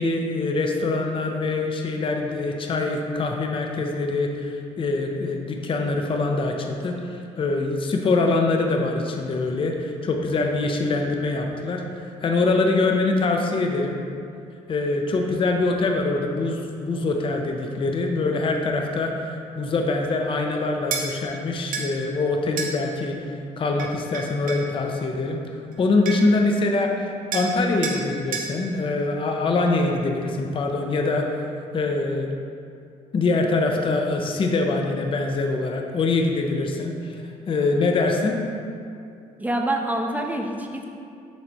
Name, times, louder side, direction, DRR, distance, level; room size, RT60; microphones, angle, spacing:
voice 1, 0.0-14.0 14.7-25.4 25.8-27.1 27.3-31.4 31.7-32.3 33.1-37.2 37.5-38.4, left 3 dB, 40° left, 2 dB, 0.6 m, -24 dB
sound 1, 20.9-21.1 21.7-21.9 22.6-22.7 23.8-24.7 25.7-25.8 26.1-26.4 27.3-27.5 27.8-28.0 28.3-28.5, right 5 dB, 85° right, 0.8 m, -29 dB
voice 2, 39.4-40.9, right 1 dB, 10° right, 2 dB, 0.7 m, -26 dB
7.1 x 3.3 x 4.1 m, 2.4 s
cardioid pair, 90°, 14 cm